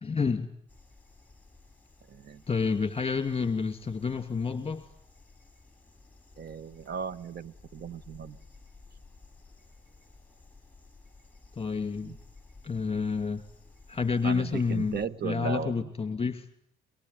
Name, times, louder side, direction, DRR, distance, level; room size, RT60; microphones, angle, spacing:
voice 1, 0.0-0.5 2.5-4.9 11.6-12.2 12.6-13.4 13.9-16.5, left 5 dB, 30° left, 10 dB, 2.5 m, -29 dB
sound 1, 0.7-15.1, left 3 dB, 10° left, 6.1 m, -55 dB
voice 2, 2.1-2.4 6.4-8.4 12.0-12.2 14.2-15.9, right 7 dB, 55° right, 16 dB, 1.5 m, -36 dB
23.5 x 23.5 x 9.7 m, 0.69 s
cardioid pair, 90°, 20 cm